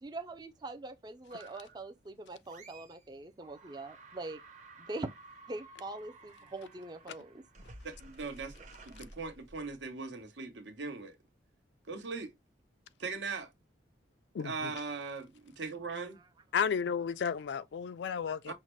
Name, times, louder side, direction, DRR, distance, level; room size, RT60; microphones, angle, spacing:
voice 1, 0.0-4.4 4.8-5.1 5.5-7.4, right 2 dB, 20° right, 0.4 m, -43 dB
sound 1, 1.3-1.9 2.4-3.1 3.4-9.8, right 3 dB, 40° right, 0.9 m, -54 dB
voice 2, 7.8-8.5 8.8-11.2 11.9-12.3 13.0-13.5 14.4-16.2 18.5-18.6, right 4 dB, 75° right, 1.0 m, -39 dB
voice 3, 14.3-14.7 16.5-18.5, left 7 dB, 70° left, 0.3 m, -33 dB
5.6 x 2.1 x 3.1 m
head